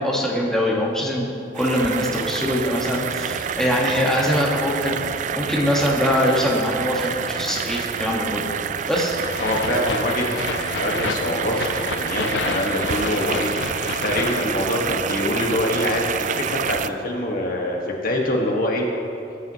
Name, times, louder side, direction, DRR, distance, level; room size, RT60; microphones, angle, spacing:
voice 1, 0.0-5.0 5.4-8.5 8.9-9.2, equal, 5° left, -4 dB, 1.6 m, -22 dB
sound 1, 1.5-16.9, right 7 dB, 45° right, 0.4 m, -28 dB
sound 2, 9.2-14.4, left 6 dB, 75° left, 0.4 m, -31 dB
voice 2, 9.4-18.8, left 1 dB, 55° left, -1 dB, 1.7 m, -25 dB
19.0 x 9.3 x 3.1 m, 2.6 s
head